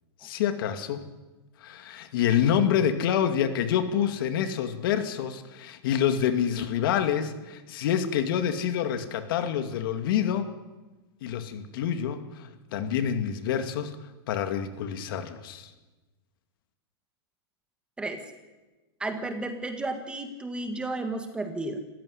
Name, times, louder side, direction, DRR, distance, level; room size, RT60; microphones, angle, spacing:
voice 1, 0.2-1.0 1.6-10.5 11.2-13.9 14.3-15.7, left 9 dB, 55° left, 8 dB, 2.4 m, -27 dB
voice 2, 19.0-21.8, right 2 dB, 5° right, 7 dB, 1.8 m, -32 dB
27.0 x 15.5 x 9.9 m, 1.2 s
supercardioid pair, 160°, 14 cm